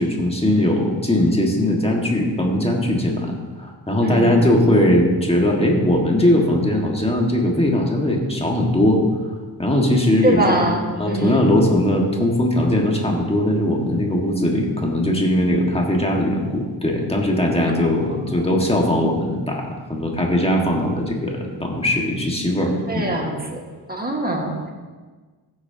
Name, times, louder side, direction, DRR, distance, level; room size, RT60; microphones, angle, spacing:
voice 1, 0.0-3.3 3.6-9.0 9.6-23.2, left 1 dB, 15° left, 0 dB, 1.7 m, -20 dB
voice 2, 4.0-4.5 10.2-11.6 22.9-24.7, right 2 dB, 20° right, 1 dB, 1.6 m, -23 dB
15.0 x 8.8 x 2.9 m, 1.4 s
wide cardioid pair, 110°, 44 cm